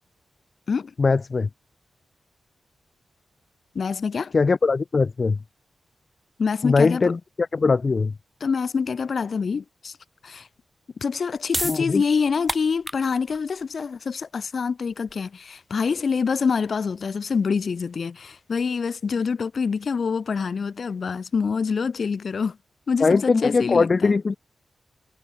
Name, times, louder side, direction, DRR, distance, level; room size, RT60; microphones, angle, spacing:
voice 1, 1.0-1.5 4.3-5.4 6.6-8.1 11.6-12.0 23.0-24.4, left 4 dB, 40° left, 0.7 m, -21 dB
voice 2, 3.8-4.3 6.4-7.0 8.4-9.9 10.2-10.5 11.0-22.6 22.9-24.1, left 5 dB, 55° left, 3.8 m, -26 dB
sound 1, 11.1-17.8, equal, 5° right, 3.8 m, -35 dB
wide cardioid pair, 120°, 0 cm